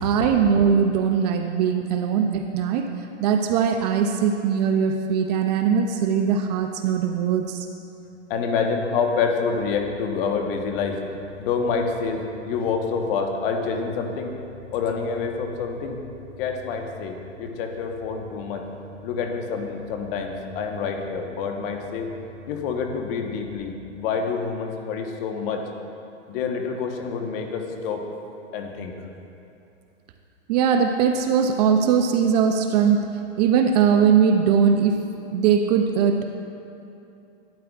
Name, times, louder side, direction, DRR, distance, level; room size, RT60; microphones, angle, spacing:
voice 1, 0.0-2.9 3.2-7.7 30.5-33.1 33.4-36.2, right 7 dB, 35° right, 5 dB, 0.4 m, -20 dB
voice 2, 8.3-11.0 11.4-14.3 14.7-16.0 16.4-18.6 19.0-22.1 22.5-25.6 26.3-28.0 28.5-28.9, left 5 dB, 50° left, 3 dB, 1.1 m, -27 dB
sound 1, 9.6-23.5, left 1 dB, 75° left, 2.0 m, -45 dB
12.0 x 9.4 x 2.4 m, 2.8 s
hypercardioid pair, 135°, 36 cm